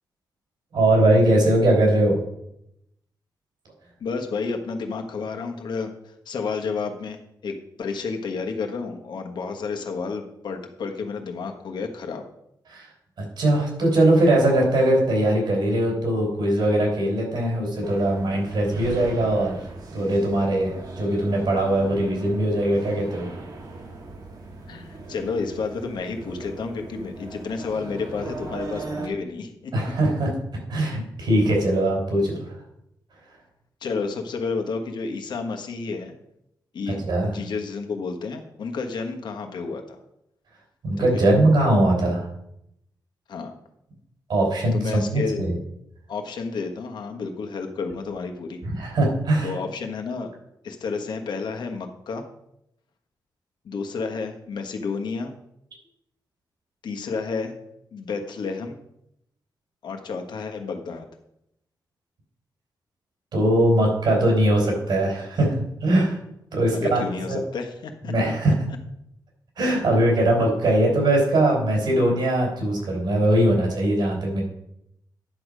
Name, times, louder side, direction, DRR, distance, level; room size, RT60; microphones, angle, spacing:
voice 1, 0.7-2.2 12.7-12.9 13.2-19.6 19.9-23.3 29.7-30.3 30.7-32.6 36.9-37.3 40.8-42.3 44.3-45.5 48.6-49.6 63.3-65.5 65.8-66.2 66.5-67.4 68.1-68.6 69.6-74.4, right 1 dB, 75° right, 0 dB, 3.8 m, -21 dB
voice 2, 4.0-12.2 24.7-29.7 33.8-36.1 36.7-40.0 41.0-41.2 43.3-43.5 44.7-45.4 46.1-48.6 49.4-50.3 50.6-52.2 53.6-55.3 56.8-57.5 57.9-58.8 59.8-61.1 66.7-68.1 68.5-68.6, left 4 dB, 80° left, 4 dB, 1.3 m, -31 dB
sound 1, 17.8-29.1, right 2 dB, 60° right, 1.5 m, -38 dB
10.5 x 6.5 x 5.1 m, 0.79 s
wide cardioid pair, 155°, 7 cm